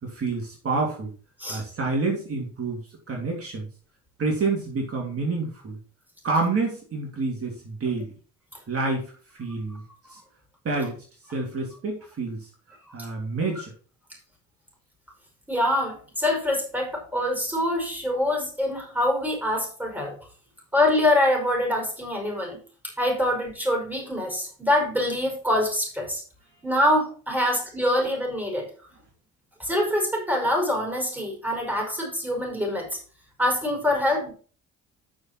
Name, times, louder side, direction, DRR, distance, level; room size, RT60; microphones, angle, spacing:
voice 1, 0.0-1.1 1.5-2.8 3.1-3.7 4.2-5.8 6.2-8.1 8.7-9.8 10.1-10.2 10.6-11.0 11.3-12.5 12.9-13.7, right 3 dB, 50° right, 0 dB, 3.1 m, -28 dB
voice 2, 15.5-20.2 20.7-22.6 23.0-26.2 26.6-28.7 29.6-33.0 33.4-34.3, left 1 dB, 5° right, 1 dB, 5.2 m, -25 dB
9.6 x 6.3 x 4.5 m, 0.40 s
cardioid pair, 90°, 30 cm